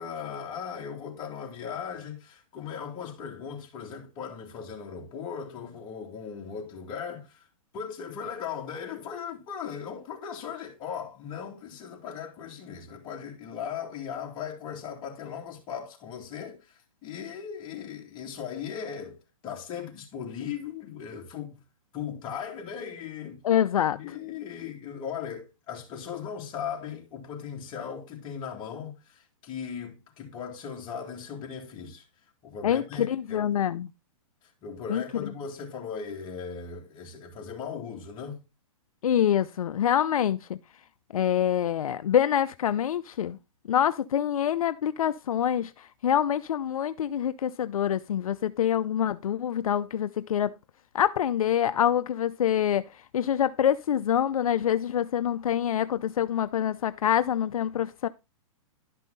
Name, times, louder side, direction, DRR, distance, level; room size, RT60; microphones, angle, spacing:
voice 1, 0.0-7.4 7.7-19.2 19.4-21.6 21.9-23.4 23.9-32.0 32.4-33.5 34.6-38.4, left 7 dB, 25° left, 2.7 m, -38 dB
voice 2, 23.4-24.0 32.6-33.9 34.9-35.0 39.0-40.6 41.1-43.4 43.7-50.5 50.9-52.8 53.1-58.1, left 9 dB, 85° left, 0.6 m, -26 dB
11.5 x 5.6 x 4.0 m
hypercardioid pair, 150°, 18 cm